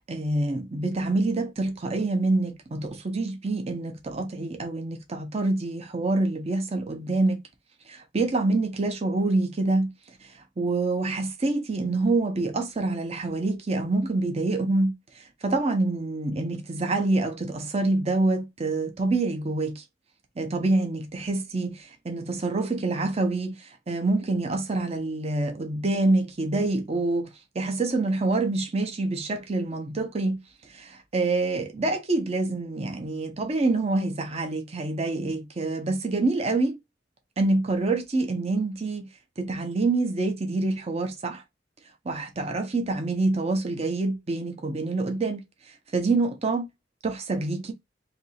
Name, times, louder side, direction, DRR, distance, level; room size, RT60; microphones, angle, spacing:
voice 1, 0.1-7.4 7.9-9.9 10.6-19.8 20.4-27.3 27.5-30.4 30.7-36.8 37.4-39.1 39.4-41.4 42.0-45.4 45.9-46.7 47.0-47.7, right 2 dB, 35° right, 0.7 m, -26 dB
2.8 x 2.6 x 4.0 m
head